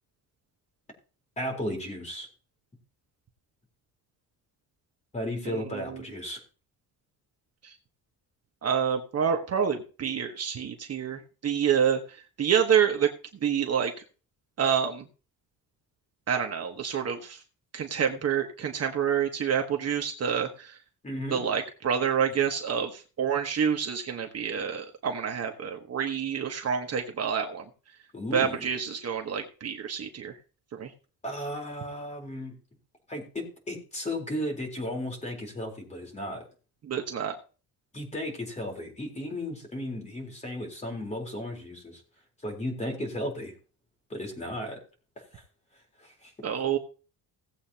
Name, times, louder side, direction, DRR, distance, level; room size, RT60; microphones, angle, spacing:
voice 1, 1.4-2.3 5.1-6.4 21.0-21.4 28.1-28.7 31.2-32.6 33.1-36.4 37.9-42.0 42.4-43.5 44.1-44.8 45.2-45.4 46.0-46.3, left 1 dB, 20° left, 2 dB, 4.0 m, -35 dB
voice 2, 5.5-5.8 7.6-7.7 8.6-12.0 12.4-13.1 13.4-13.9 14.6-15.0 16.3-17.4 17.7-20.8 21.3-27.6 28.3-30.3 30.7-30.9 36.9-37.3 46.4-46.8, right 7 dB, 40° right, 3 dB, 1.3 m, -27 dB
17.5 x 8.0 x 2.9 m, 0.36 s
cardioid pair, 145°, 37 cm